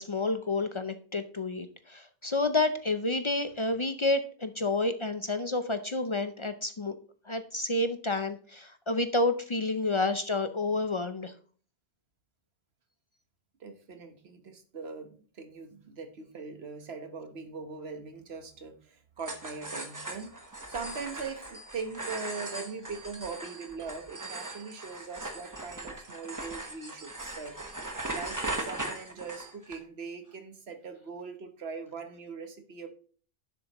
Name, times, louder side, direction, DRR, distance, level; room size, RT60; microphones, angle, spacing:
voice 1, 0.0-6.9 7.2-11.3, left 2 dB, 35° left, 9 dB, 0.5 m, -29 dB
voice 2, 13.6-27.5 28.1-32.9, right 5 dB, 90° right, 7 dB, 1.4 m, -41 dB
sound 1, 19.2-29.8, right 2 dB, 20° right, 1.1 m, -39 dB
10.0 x 7.5 x 3.0 m, 0.43 s
omnidirectional pair, 1.0 m